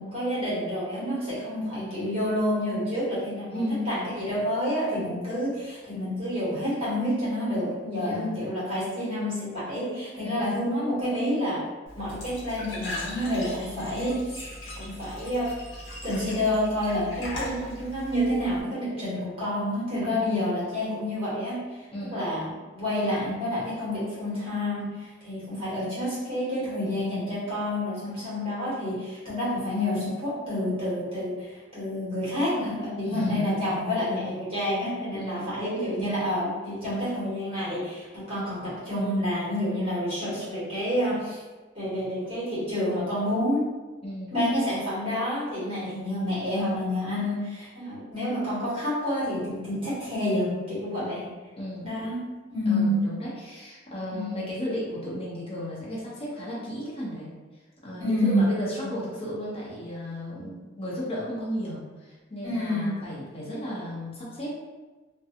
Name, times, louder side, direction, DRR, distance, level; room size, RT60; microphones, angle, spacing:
voice 1, 0.0-3.6 3.9-11.6 11.9-14.4 14.8-15.5 16.0-21.6 22.1-41.4 41.7-43.6 44.3-51.2 51.8-52.2 52.5-53.0 54.1-54.3 58.0-58.5 62.4-62.9, left 1 dB, 30° right, -11 dB, 1.2 m, -28 dB
voice 2, 3.5-4.1 8.0-8.4 10.2-10.5 20.0-20.4 21.9-22.3 33.0-33.6 35.1-35.6 44.0-44.4 51.0-51.9 52.7-57.3 57.8-64.5, equal, 30° left, -6 dB, 0.8 m, -34 dB
Glass / Trickle dribble / Fill (with liquid), 11.9-18.6, left 1 dB, 70° left, 0.8 m, -39 dB
2.5 x 2.3 x 2.7 m, 1.3 s
head